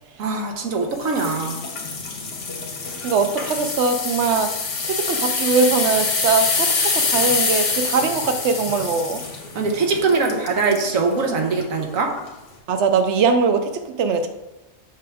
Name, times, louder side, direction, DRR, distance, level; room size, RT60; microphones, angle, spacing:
voice 1, 0.2-1.6 9.5-12.1, right 4 dB, 90° right, 2 dB, 1.4 m, -22 dB
sound 1, 1.0-10.9 11.4-11.6 12.2-12.3, left 4 dB, 65° left, 1.4 m, -25 dB
voice 2, 3.0-4.5 4.8-9.2 12.7-13.7 14.0-14.3, right 4 dB, 65° right, 8 dB, 1.0 m, -21 dB
7.7 x 5.9 x 3.5 m, 1.0 s
omnidirectional pair, 1.4 m